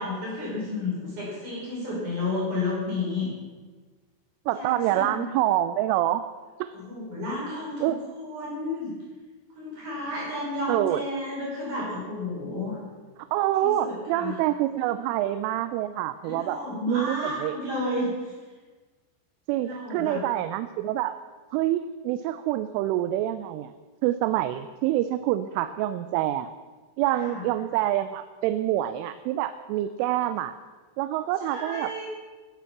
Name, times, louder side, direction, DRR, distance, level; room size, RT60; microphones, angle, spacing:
voice 1, 0.0-3.3 4.5-5.2 6.9-8.9 9.6-12.8 13.6-14.3 16.2-18.1 19.6-20.2 27.2-27.4 31.5-32.0, left 2 dB, 40° right, -5 dB, 6.2 m, -32 dB
voice 2, 4.5-6.2 6.6-6.7 7.8-8.0 10.7-11.0 13.3-16.6 16.9-17.6 19.5-21.2 21.5-23.7 24.0-26.5 27.0-30.5 31.0-32.0, right 13 dB, 85° right, 12 dB, 3.1 m, -26 dB
13.0 x 12.0 x 7.2 m, 1.4 s
omnidirectional pair, 5.7 m